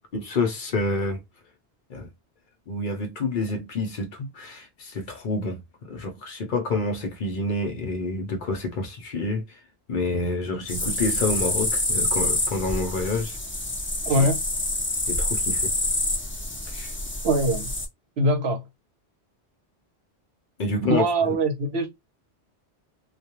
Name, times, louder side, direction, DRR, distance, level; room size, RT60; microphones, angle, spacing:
voice 1, 0.1-1.2 1.9-2.1 2.7-5.6 5.8-9.6 9.9-13.4 14.1-14.3 15.1-15.7 16.7-16.9 20.6-21.0, left 2 dB, 55° left, 0.7 m, -28 dB
sound 1, 10.7-17.9, left 1 dB, 15° left, 0.4 m, -27 dB
voice 2, 14.0-14.4 17.2-17.7 18.2-18.6 20.8-21.9, right 1 dB, 70° right, 1.0 m, -22 dB
2.3 x 2.3 x 2.8 m
omnidirectional pair, 1.1 m